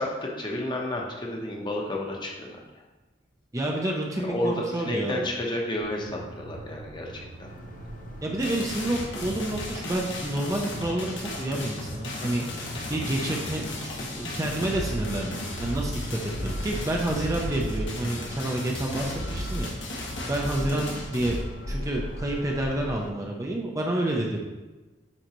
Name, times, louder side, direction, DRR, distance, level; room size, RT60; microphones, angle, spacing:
voice 1, 0.0-2.6 4.2-7.5 20.6-20.8, left 1 dB, 25° left, -1 dB, 0.9 m, -31 dB
voice 2, 3.5-5.2 8.2-19.7 20.3-21.4 21.7-24.4, right 1 dB, 15° right, -1 dB, 0.6 m, -29 dB
sound 1, 5.8-19.5, right 2 dB, 70° right, 0.5 m, -43 dB
sound 2, 7.4-23.1, left 1 dB, 45° left, 0.6 m, -41 dB
sound 3, 8.4-21.4, left 1 dB, 80° left, 1.4 m, -35 dB
9.6 x 3.9 x 3.0 m, 1.2 s
head